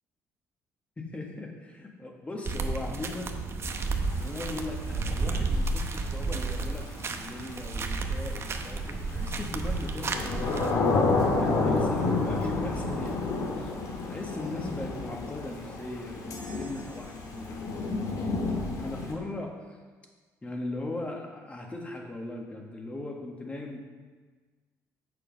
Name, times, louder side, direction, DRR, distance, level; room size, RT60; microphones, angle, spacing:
voice 1, 1.0-3.4 4.1-10.8 11.1-13.7 14.1-18.1 18.8-19.8 20.4-23.8, left 2 dB, 20° left, 1 dB, 1.6 m, -39 dB
sound 1, 2.5-10.7, right 3 dB, 45° right, 0.8 m, -32 dB
Thunder / Rain, 3.7-19.1, left 3 dB, 75° left, 1.7 m, -30 dB
sound 2, 16.3-17.8, left 2 dB, 60° left, 1.2 m, -49 dB
7.0 x 6.6 x 5.3 m, 1.4 s
cardioid pair, 95°, 6 cm